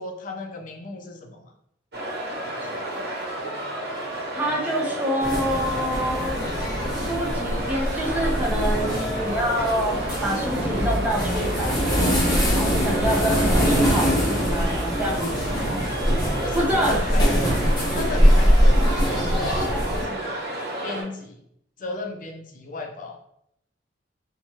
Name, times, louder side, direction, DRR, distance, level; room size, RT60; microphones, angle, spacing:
voice 1, 0.0-1.5 16.4-17.4 17.9-20.4 20.8-21.4 21.8-23.2, left 3 dB, 45° left, 2 dB, 0.4 m, -35 dB
sound 1, 1.9-21.0, right 1 dB, 60° right, 1.0 m, -31 dB
voice 2, 4.3-6.4 7.1-11.8 12.5-15.6 16.5-17.0, equal, 10° right, -4 dB, 0.7 m, -26 dB
sound 2, 5.2-20.0, equal, 25° left, 1.0 m, -23 dB
2.9 x 2.2 x 2.7 m, 0.73 s
head